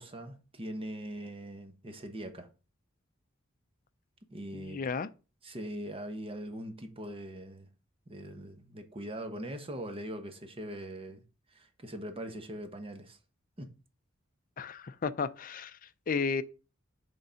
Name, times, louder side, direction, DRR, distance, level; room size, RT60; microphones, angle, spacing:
voice 1, 0.0-2.5 4.3-4.8 5.4-7.7 8.1-11.2 11.5-13.2 13.6-13.8, right 1 dB, 25° right, 1.0 m, -41 dB
voice 2, 4.5-5.1 14.6-15.8 16.1-16.4, left 5 dB, 40° left, 0.5 m, -33 dB
6.6 x 3.8 x 5.6 m
head